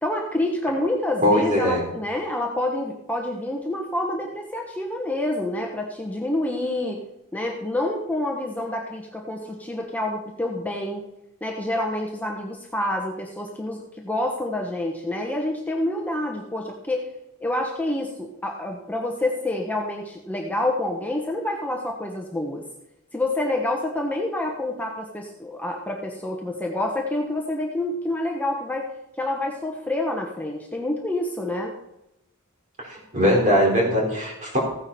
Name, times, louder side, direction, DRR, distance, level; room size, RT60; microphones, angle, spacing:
voice 1, 0.0-7.0 7.3-11.0 11.4-17.0 17.4-22.6 23.1-28.9 29.2-31.7, left 1 dB, 10° left, 0 dB, 1.1 m, -27 dB
voice 2, 1.2-1.8 32.9-34.6, equal, 35° right, -1 dB, 4.4 m, -20 dB
15.5 x 9.7 x 4.3 m, 0.88 s
head